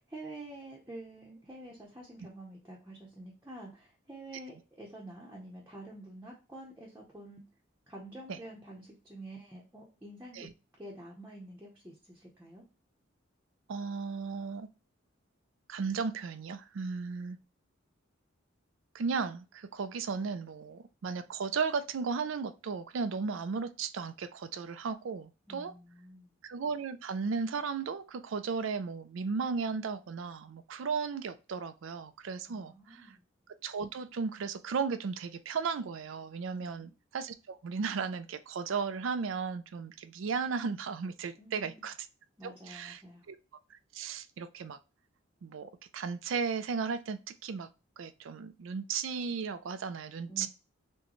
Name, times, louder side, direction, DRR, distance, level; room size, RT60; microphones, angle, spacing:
voice 1, 0.1-7.4 7.9-10.5 10.8-12.6 25.5-26.3 32.5-33.2 36.5-36.9 41.4-41.9 42.4-43.2 50.3-50.5, right 1 dB, 15° right, -3 dB, 0.7 m, -48 dB
voice 2, 13.7-14.7 15.7-17.4 18.9-25.7 26.4-33.1 33.6-41.9 42.4-43.0 43.3-43.4 43.7-44.8 45.4-47.7 48.0-50.5, right 5 dB, 70° right, 12 dB, 0.4 m, -35 dB
6.2 x 2.2 x 3.0 m, 0.31 s
head